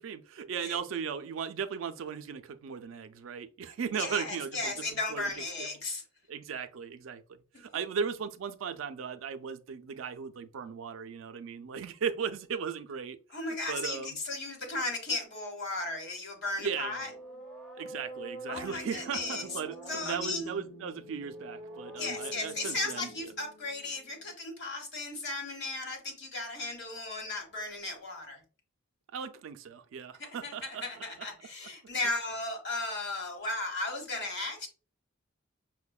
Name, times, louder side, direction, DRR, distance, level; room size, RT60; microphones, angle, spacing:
voice 1, 0.0-4.7 5.1-5.3 5.6-5.7 6.3-13.2 13.7-14.2 16.6-16.9 17.8-23.1 29.1-30.8, right 6 dB, 70° right, 0.4 m, -37 dB
voice 2, 3.9-6.0 13.3-17.1 18.5-19.6 19.9-20.5 22.0-28.4 30.2-34.7, left 2 dB, 60° left, 1.0 m, -35 dB
sound 1, 16.6-24.3, right 1 dB, ahead, 0.6 m, -46 dB
5.6 x 2.1 x 2.2 m
head